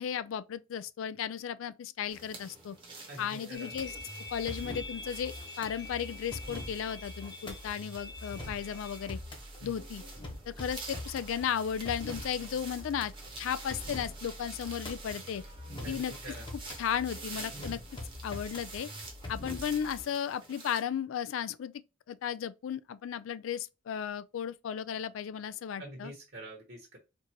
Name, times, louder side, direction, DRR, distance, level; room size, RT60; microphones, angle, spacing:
voice 1, 0.0-2.8 3.2-4.0 4.3-9.2 9.6-10.0 10.6-15.4 15.9-16.1 16.8-17.8 18.2-18.9 19.3-21.7 22.1-26.1, left 8 dB, 70° left, 0.3 m, -35 dB
sound 1, 2.1-20.8, right 3 dB, 25° right, 1.0 m, -48 dB
voice 2, 3.1-3.7 9.6-9.8 15.8-16.4 25.8-27.0, right 1 dB, 50° right, 1.2 m, -45 dB
sound 2, 3.5-9.1, left 2 dB, 55° left, 1.2 m, -46 dB
sound 3, 3.7-20.0, left 1 dB, 25° left, 0.9 m, -44 dB
4.5 x 2.5 x 2.9 m
head